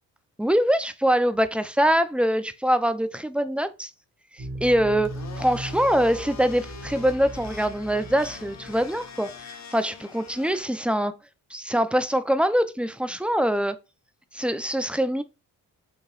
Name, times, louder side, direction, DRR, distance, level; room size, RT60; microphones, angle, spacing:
voice 1, 0.4-3.9 4.4-11.2 11.5-13.8 14.3-15.2, equal, 5° right, 0.6 m, -24 dB
sound 1, 4.4-9.4, right 1 dB, 40° right, 1.8 m, -38 dB
Domestic sounds home sounds, 5.0-10.6, left 6 dB, 45° left, 1.1 m, -43 dB
5.5 x 3.0 x 2.5 m
supercardioid pair, 50°, 39 cm